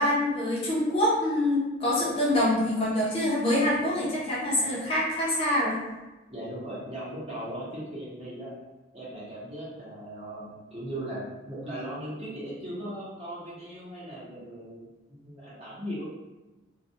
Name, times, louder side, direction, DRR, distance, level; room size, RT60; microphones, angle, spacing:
voice 1, 0.0-5.8, left 1 dB, 30° left, -7 dB, 0.5 m, -25 dB
voice 2, 6.3-8.5 8.9-14.8 15.2-16.0, right 1 dB, 30° right, -8 dB, 0.8 m, -38 dB
2.3 x 2.2 x 2.7 m, 1.1 s
head